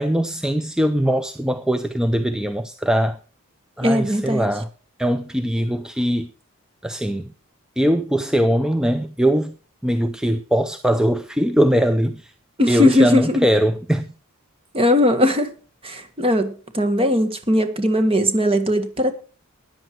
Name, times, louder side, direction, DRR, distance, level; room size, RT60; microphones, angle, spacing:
voice 1, 0.0-3.2 3.8-4.7 5.0-6.3 6.8-7.3 7.8-9.6 9.8-12.3 12.7-14.1, equal, 5° right, 0.5 m, -21 dB
voice 2, 3.8-4.5 12.6-13.5 14.7-15.5 15.8-19.1, left 1 dB, 25° right, 1.6 m, -19 dB
13.5 x 10.0 x 4.5 m
head